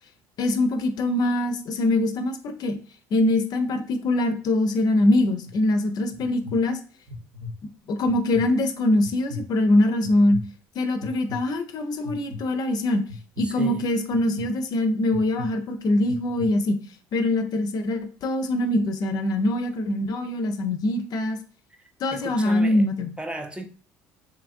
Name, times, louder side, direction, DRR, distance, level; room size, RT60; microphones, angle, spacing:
voice 1, 0.4-2.8 3.1-6.8 7.9-10.4 10.8-13.0 13.4-16.8 17.1-21.4 22.0-23.1, left 1 dB, 55° left, 0.5 m, -23 dB
sound 1, 5.5-5.6 6.1-6.6 7.1-7.5 8.0-8.5 9.0-9.5 10.0-10.4 11.0-11.4 12.0-12.4 13.1-13.4 14.1-14.5 15.1-15.5 16.0-16.5, left 3 dB, 55° right, 0.9 m, -36 dB
voice 2, 13.4-13.8 22.1-22.9 23.2-23.6, right 2 dB, 10° right, 0.5 m, -34 dB
2.9 x 2.5 x 2.5 m
hypercardioid pair, 70°, 8 cm